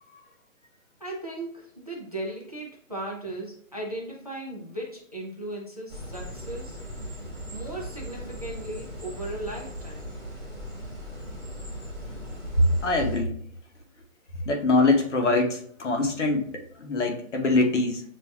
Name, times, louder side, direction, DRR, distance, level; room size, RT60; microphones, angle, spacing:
voice 1, 1.0-6.8 7.5-10.1, right 1 dB, 30° right, -2 dB, 0.5 m, -37 dB
sound 1, 5.9-13.2, equal, 5° left, 0.7 m, -38 dB
voice 2, 12.8-13.3 14.5-18.0, left 3 dB, 55° left, 3 dB, 0.9 m, -24 dB
7.0 x 2.7 x 2.2 m, 0.62 s
hypercardioid pair, 170°, 42 cm